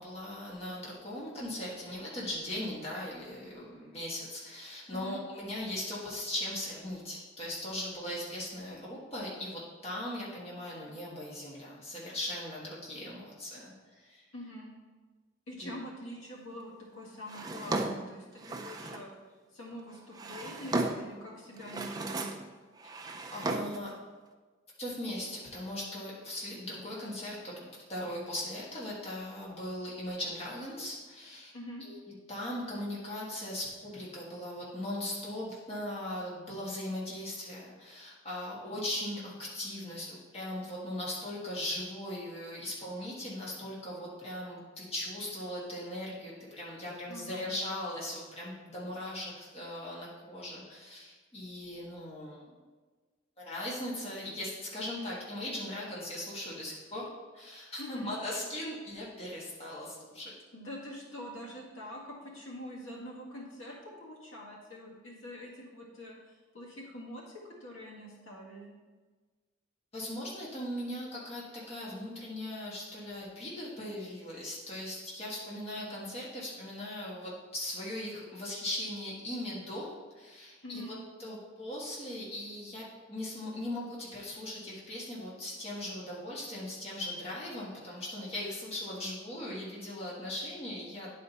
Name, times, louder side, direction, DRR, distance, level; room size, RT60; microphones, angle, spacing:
voice 1, 0.0-14.2 15.6-15.7 23.3-23.9 24.8-31.5 31.8-32.0 32.3-52.4 53.4-57.1 57.3-60.3 69.9-80.8 81.2-91.1, left 1 dB, 30° left, -6 dB, 1.5 m, -39 dB
voice 2, 14.3-14.7 15.5-19.1 19.5-22.3 31.5-31.8 47.1-47.5 57.8-58.1 60.5-68.7 80.6-81.0, equal, 85° left, -3 dB, 1.8 m, -44 dB
Drawer open or close, 17.3-19.1 19.9-21.2 21.6-22.5 22.8-23.9, right 2 dB, 20° right, 0.4 m, -35 dB
9.9 x 4.3 x 4.0 m, 1.4 s
head